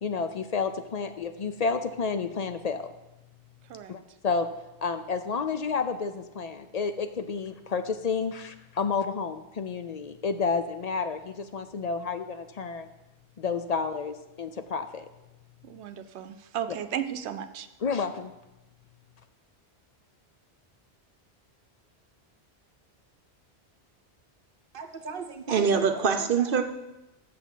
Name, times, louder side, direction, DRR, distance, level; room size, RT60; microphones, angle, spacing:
voice 1, 0.0-2.9 3.9-4.5 4.8-12.9 13.4-15.1 17.8-18.3, left 5 dB, 50° left, 9 dB, 0.5 m, -30 dB
voice 2, 15.6-17.7, right 9 dB, 85° right, 10 dB, 0.9 m, -35 dB
voice 3, 24.7-26.6, right 6 dB, 60° right, 7 dB, 0.9 m, -25 dB
6.6 x 6.1 x 7.2 m, 0.95 s
omnidirectional pair, 1.1 m